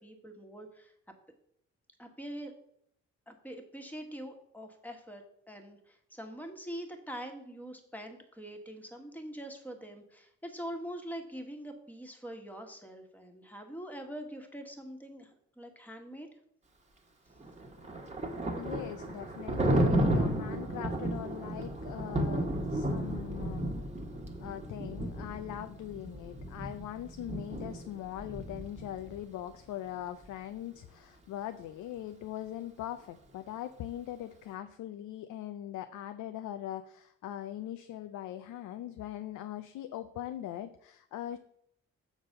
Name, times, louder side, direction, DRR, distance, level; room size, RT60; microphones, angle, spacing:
voice 1, 0.0-0.9 2.0-2.5 3.3-16.3, equal, 5° left, 4 dB, 1.5 m, -44 dB
Thunder, 17.4-29.2, right 1 dB, 20° right, 1.4 m, -33 dB
voice 2, 18.6-23.6 24.4-41.4, left 12 dB, 80° left, 9 dB, 0.6 m, -41 dB
7.1 x 4.0 x 6.5 m, 0.70 s
cardioid pair, 90°, 30 cm